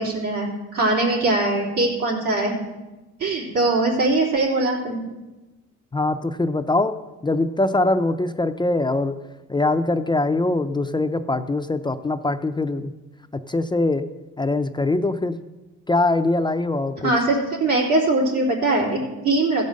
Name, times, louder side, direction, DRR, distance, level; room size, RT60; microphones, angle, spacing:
voice 1, 0.0-2.6 3.2-5.0 17.0-19.7, right 2 dB, 85° right, -3 dB, 3.5 m, -21 dB
voice 2, 5.9-9.1 9.5-12.9 13.5-14.1 14.4-15.4 15.9-17.1, left 2 dB, 15° left, 8 dB, 0.5 m, -22 dB
15.5 x 5.4 x 6.3 m, 1.1 s
cardioid pair, 90°, 30 cm